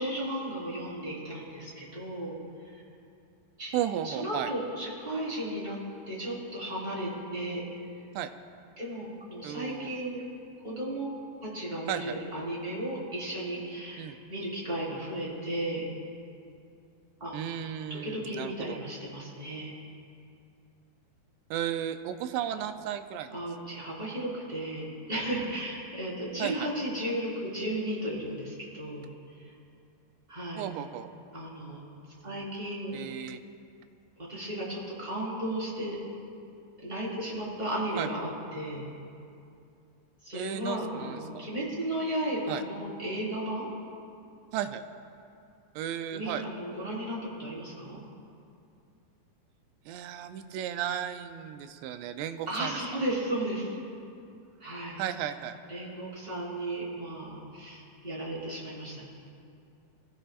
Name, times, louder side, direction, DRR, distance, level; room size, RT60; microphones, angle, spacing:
voice 1, 0.0-2.4 3.6-3.8 4.0-5.8 6.1-7.6 8.8-10.2 10.6-11.1 11.4-15.9 17.2-17.6 18.0-19.7 23.3-29.1 29.3-29.5 30.3-30.7 31.3-31.8 32.2-33.0 34.3-36.0 36.8-38.9 40.2-43.7 46.1-48.0 52.5-53.8 54.6-55.0 55.7-59.0, right 1 dB, 10° right, -7 dB, 4.1 m, -34 dB
voice 2, 3.7-4.5 8.2-8.3 9.4-9.9 11.9-12.2 14.0-14.2 17.3-18.8 21.5-23.4 26.4-26.7 30.6-31.1 32.9-33.4 38.0-38.1 40.3-41.5 42.5-42.6 44.5-44.8 45.8-46.4 49.9-52.8 55.0-55.6, right 10 dB, 85° right, 9 dB, 2.8 m, -34 dB
28.0 x 16.0 x 2.5 m, 2.5 s
omnidirectional pair, 4.9 m